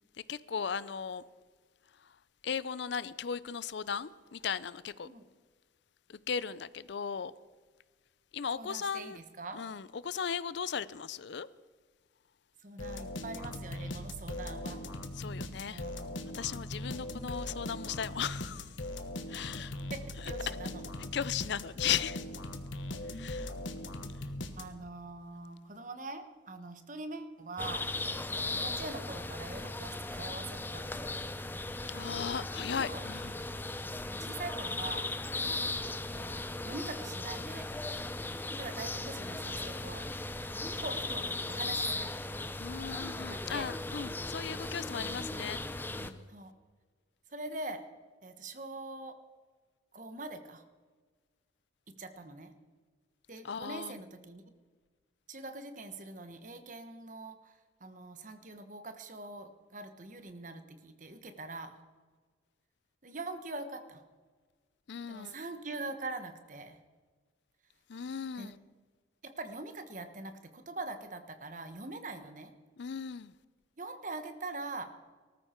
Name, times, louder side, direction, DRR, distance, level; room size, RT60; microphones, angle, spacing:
voice 1, 0.3-1.2 2.4-5.1 6.1-7.3 8.3-9.2 9.5-11.5 15.2-15.8 16.3-18.8 19.3-19.7 21.1-22.2 23.1-23.5 31.9-33.4 42.6-45.6 46.0-46.3 53.4-54.0 64.9-65.3 67.9-68.6 72.8-73.3, left 7 dB, 60° left, 0.5 m, -37 dB
voice 2, 8.6-9.6 12.6-14.8 15.7-16.2 19.9-20.8 24.6-27.8 28.5-31.1 32.8-33.1 34.1-35.1 36.1-37.7 38.5-40.1 40.6-42.1 43.3-43.7 44.9-45.2 46.3-46.5 47.3-47.8 48.2-49.2 49.9-50.6 52.0-52.5 53.3-54.4 55.3-61.8 63.0-64.0 65.1-66.8 68.3-68.5 69.2-72.5 73.8-74.9, right 2 dB, 40° right, 1.2 m, -43 dB
sound 1, 12.8-25.0, left 1 dB, 75° left, 1.3 m, -40 dB
sound 2, 27.6-46.1, left 2 dB, 10° left, 0.5 m, -37 dB
19.0 x 13.5 x 4.5 m
head